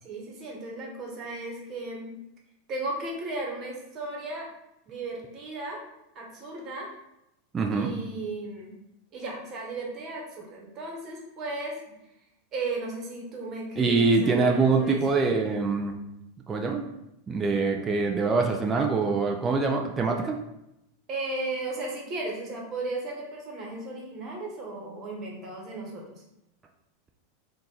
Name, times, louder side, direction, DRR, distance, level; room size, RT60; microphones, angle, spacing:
voice 1, 0.0-2.1 2.7-4.5 4.9-5.8 6.1-6.9 7.7-8.8 9.1-11.9 12.5-15.1 21.1-26.2, right 2 dB, 40° right, -1 dB, 1.3 m, -35 dB
voice 2, 7.5-7.9 13.8-15.9 16.5-16.9 17.3-20.4, right 4 dB, 25° right, 2 dB, 0.5 m, -24 dB
4.0 x 2.6 x 3.9 m, 0.87 s
hypercardioid pair, 110°, 0 cm